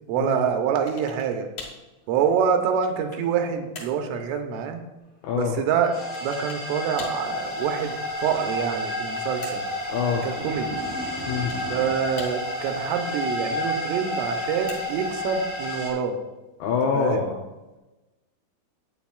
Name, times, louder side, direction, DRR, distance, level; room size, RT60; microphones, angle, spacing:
voice 1, 0.1-1.5 2.1-4.8 5.3-9.7 10.2-10.8 11.7-16.2 16.9-17.3, right 7 dB, 85° right, 5 dB, 3.3 m, -26 dB
sound 1, 0.9-1.3 1.6-1.9 2.5-3.3 3.7-4.0 6.1-6.7 7.0-7.3 8.7-9.8 11.2-11.7 12.2-12.7 14.1-15.1, left 3 dB, 55° left, 1.9 m, -42 dB
voice 2, 5.2-5.5 9.9-10.2 11.3-11.5 16.6-17.4, left 6 dB, 80° left, 0 dB, 2.4 m, -25 dB
sound 2, 5.8-15.9, equal, 5° right, 0.6 m, -31 dB
sound 3, 10.0-12.1, right 1 dB, 15° left, 1.0 m, -38 dB
11.5 x 8.8 x 2.4 m, 1.1 s
omnidirectional pair, 5.6 m